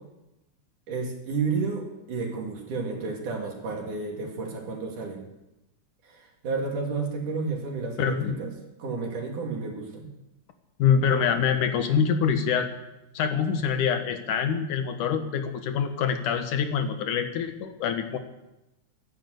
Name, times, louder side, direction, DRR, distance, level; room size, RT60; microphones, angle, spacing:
voice 1, 0.9-5.2 6.1-8.5 8.8-10.1, right 4 dB, 80° right, 1 dB, 4.2 m, -31 dB
voice 2, 8.0-8.4 10.8-12.7 13.1-18.2, left 7 dB, 85° left, 7 dB, 2.9 m, -25 dB
15.0 x 12.0 x 8.1 m, 0.96 s
omnidirectional pair, 3.5 m